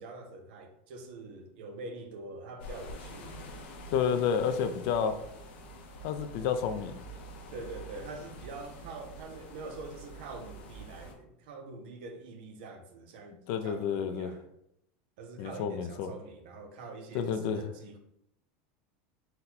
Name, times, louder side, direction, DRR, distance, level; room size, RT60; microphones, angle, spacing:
voice 1, 0.0-3.4 7.5-14.4 15.2-18.0, right 3 dB, 70° right, 0.6 m, -45 dB
sound 1, 2.6-11.1, equal, 80° left, 0.7 m, -46 dB
voice 2, 3.9-5.1 6.0-6.9 13.5-14.3 15.4-16.1 17.1-17.7, left 7 dB, 55° left, 0.4 m, -30 dB
4.1 x 2.2 x 4.0 m
supercardioid pair, 155°, 6 cm